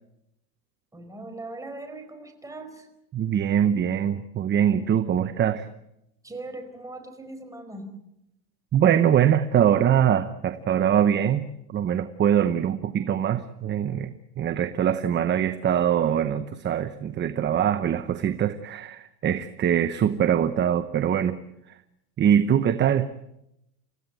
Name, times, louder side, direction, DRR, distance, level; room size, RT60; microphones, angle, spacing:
voice 1, 0.9-2.9 6.2-7.9, right 2 dB, 5° right, 5 dB, 4.9 m, -39 dB
voice 2, 3.1-5.7 8.7-21.4 22.2-23.1, right 9 dB, 25° right, 11 dB, 0.9 m, -23 dB
30.0 x 15.0 x 9.1 m, 0.83 s
supercardioid pair, 135°, 48 cm